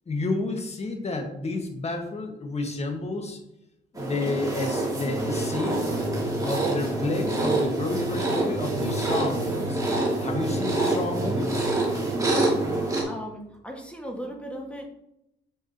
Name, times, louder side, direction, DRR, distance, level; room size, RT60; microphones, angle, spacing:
voice 1, 0.1-3.4 3.9-5.8 6.4-9.8 10.2-11.7, left 2 dB, 35° left, 3 dB, 1.5 m, -30 dB
sound 1, 4.0-13.0, right 2 dB, 15° right, 2.2 m, -26 dB
voice 2, 13.1-14.9, equal, 5° left, 1 dB, 1.6 m, -37 dB
7.2 x 6.6 x 2.8 m, 0.84 s
cardioid pair, 90°, 20 cm